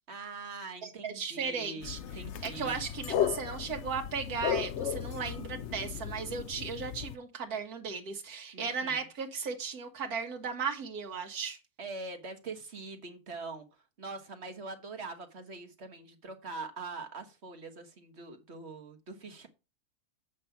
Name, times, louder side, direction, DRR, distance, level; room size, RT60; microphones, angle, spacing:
voice 1, 0.1-2.8 8.5-9.0 11.8-19.5, right 3 dB, 50° right, 6 dB, 1.5 m, -43 dB
voice 2, 0.8-2.0 2.4-11.6, right 5 dB, 85° right, 2 dB, 1.7 m, -36 dB
sound 1, 1.8-7.2, left 10 dB, 60° left, 0.8 m, -35 dB
8.3 x 5.4 x 5.7 m, 0.28 s
omnidirectional pair, 1.5 m